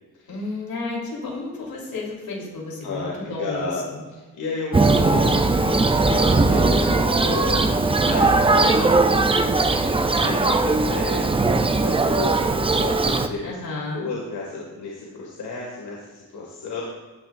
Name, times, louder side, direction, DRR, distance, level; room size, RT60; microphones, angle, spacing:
voice 1, 0.3-4.0 4.9-5.5 6.3-6.9 13.4-14.1, left 3 dB, 70° left, -2 dB, 3.7 m, -33 dB
voice 2, 2.8-3.9 4.3-5.3 5.8-9.4 10.2-13.6 13.9-16.8, left 3 dB, 85° left, -4 dB, 2.2 m, -32 dB
Thunder, 4.7-13.3, right 3 dB, 15° right, 0.5 m, -19 dB
15.5 x 9.6 x 2.6 m, 1.3 s
wide cardioid pair, 135°, 37 cm